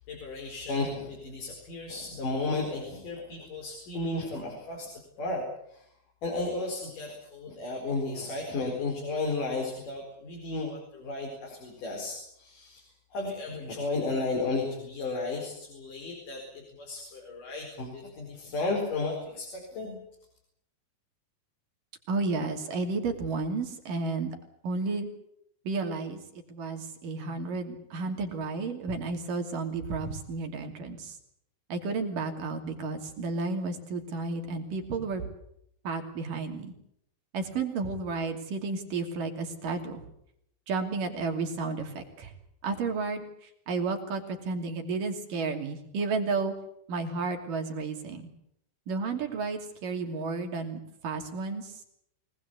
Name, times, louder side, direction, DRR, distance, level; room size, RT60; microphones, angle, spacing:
voice 1, 0.1-4.9 5.2-5.4 5.7-5.9 6.2-20.0, left 3 dB, 60° left, 0 dB, 6.2 m, -33 dB
voice 2, 22.1-24.4 24.6-25.1 25.7-26.2 26.5-31.2 31.7-35.3 35.8-36.7 37.3-40.0 40.7-42.3 42.6-46.5 46.9-48.2 48.9-51.7, right 4 dB, 65° right, 4 dB, 4.3 m, -32 dB
24.0 x 19.5 x 8.3 m, 0.74 s
omnidirectional pair, 4.3 m